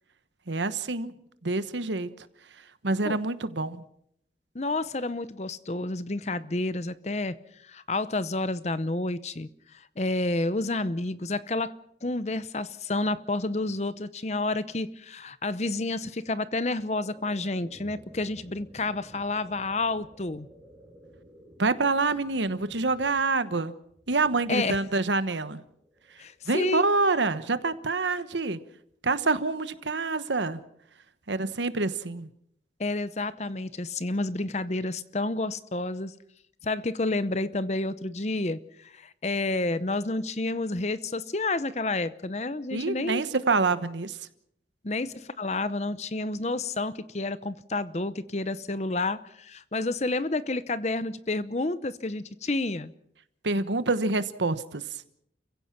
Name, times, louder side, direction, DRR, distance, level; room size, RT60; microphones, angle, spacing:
voice 1, 0.5-1.1 1.4-2.3 2.8-3.8 21.6-23.7 24.1-25.6 26.5-28.6 29.0-30.6 31.3-32.3 42.7-44.3 53.4-55.0, right 3 dB, 85° right, 13 dB, 1.2 m, -27 dB
voice 2, 4.5-7.4 7.6-11.7 12.0-20.5 24.5-24.8 26.2-26.9 32.8-36.1 36.6-43.2 44.8-52.9, left 2 dB, 40° left, 15 dB, 0.8 m, -30 dB
sound 1, 16.1-27.3, equal, 10° right, 7.0 m, -54 dB
29.5 x 16.0 x 5.9 m, 0.72 s
head